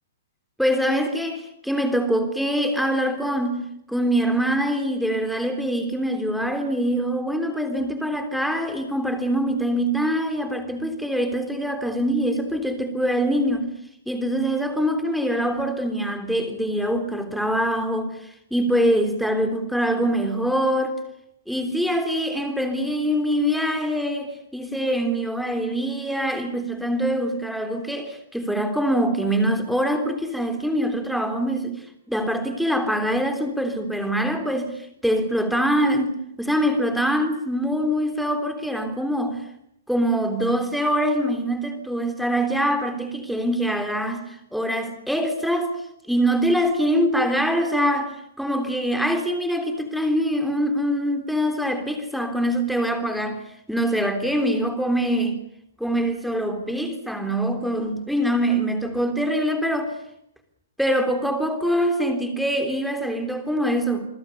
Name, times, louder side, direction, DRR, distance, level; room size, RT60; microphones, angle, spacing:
voice 1, 0.6-13.7 14.1-18.1 18.5-21.0 21.5-31.8 32.1-34.7 35.0-39.4 39.9-45.7 46.1-53.4 53.7-55.4 55.8-59.9 60.8-64.1, equal, ahead, 3.4 m, -24 dB
29.0 x 20.5 x 7.0 m
hypercardioid pair, 145°, 0 cm